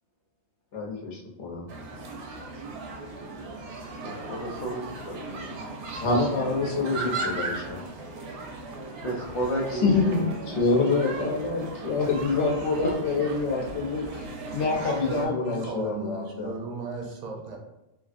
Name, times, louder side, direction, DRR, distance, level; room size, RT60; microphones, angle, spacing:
voice 1, 0.7-1.7 6.0-7.8 9.8-14.3 14.5-16.5, left 3 dB, 80° left, -1 dB, 1.1 m, -26 dB
sound 1, 1.7-15.3, right 3 dB, 80° right, 0.9 m, -37 dB
voice 2, 4.0-5.6 6.4-7.3 9.0-10.9 11.2-11.3 12.2-12.5 12.8-12.9, right 1 dB, 50° left, -5 dB, 0.5 m, -34 dB
voice 3, 14.8-17.6, right 3 dB, 55° right, 1 dB, 0.5 m, -35 dB
3.0 x 2.4 x 2.5 m, 0.95 s
omnidirectional pair, 1.2 m